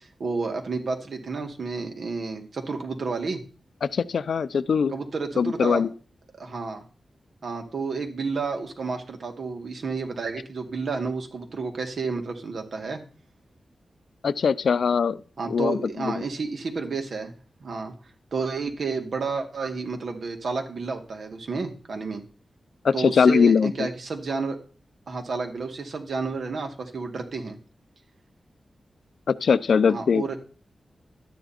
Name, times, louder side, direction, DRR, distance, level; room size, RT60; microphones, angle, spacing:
voice 1, 0.0-3.4 4.9-5.8 6.4-6.8 7.4-13.0 15.4-17.3 17.6-17.9 18.3-22.2 22.9-24.6 25.1-27.6 29.9-30.4, right 4 dB, 65° right, 2.2 m, -31 dB
voice 2, 3.8-4.9 5.4-5.9 14.2-15.2 15.5-16.2 22.8-23.9 29.3-30.2, left 6 dB, 75° left, 0.6 m, -21 dB
12.0 x 9.3 x 4.4 m
wide cardioid pair, 100°, 0 cm